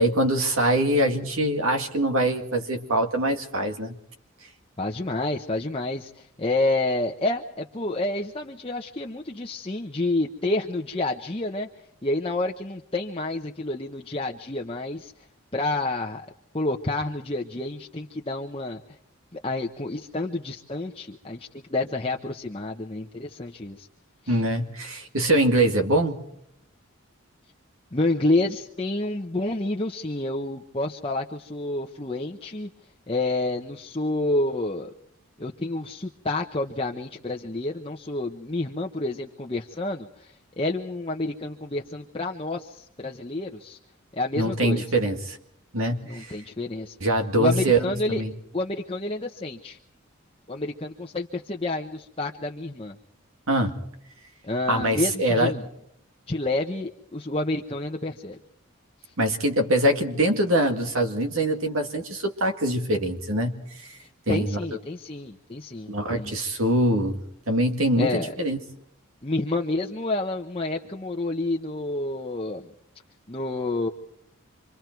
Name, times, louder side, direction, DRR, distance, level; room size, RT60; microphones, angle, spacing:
voice 1, 0.0-3.9 24.3-26.2 44.4-45.4 45.7-46.3 47.0-47.8 48.1-48.3 53.5-53.8 54.7-55.6 59.2-63.9 64.3-64.6 65.9-68.6, right 1 dB, 80° right, 5 dB, 2.2 m, -23 dB
voice 2, 4.8-11.7 12.0-15.3 15.5-16.3 16.5-19.0 19.3-23.9 24.2-24.4 27.9-32.7 33.1-34.9 35.4-43.8 44.1-44.9 46.0-47.0 47.4-48.2 48.5-49.8 50.5-53.0 54.4-55.7 56.3-58.4 59.0-59.1 64.0-66.3 68.0-68.3 69.2-72.7 73.3-73.9, left 2 dB, 25° left, 2 dB, 0.9 m, -29 dB
27.0 x 25.0 x 4.6 m, 0.72 s
head